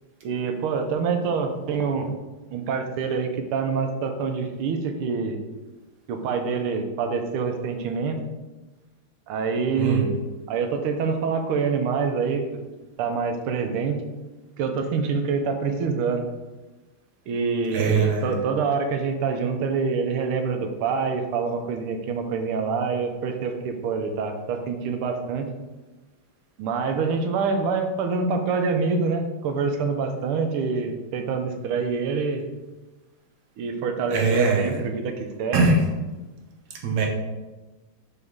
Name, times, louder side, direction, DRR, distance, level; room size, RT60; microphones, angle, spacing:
voice 1, 0.2-2.1 2.5-5.4 6.1-8.2 9.3-10.1 10.5-12.6 13.0-14.0 14.6-16.2 17.3-25.4 26.6-32.5 33.6-35.7, right 5 dB, 85° right, 6 dB, 1.6 m, -26 dB
voice 2, 9.8-10.1 17.7-18.3 34.1-34.8 35.5-35.8 36.8-37.1, right 4 dB, 60° right, 1 dB, 1.3 m, -21 dB
7.0 x 4.1 x 3.6 m, 1.2 s
omnidirectional pair, 2.3 m